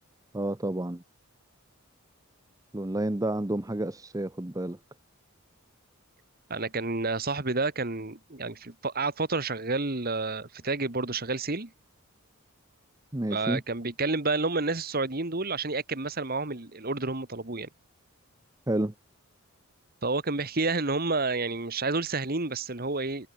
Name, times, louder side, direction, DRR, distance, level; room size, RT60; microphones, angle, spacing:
voice 1, 0.3-1.0 2.7-4.8 13.1-13.6 18.7-18.9, right 1 dB, 15° right, 0.8 m, -30 dB
voice 2, 6.5-11.7 13.3-17.7 20.0-23.3, right 3 dB, 45° right, 1.9 m, -30 dB
head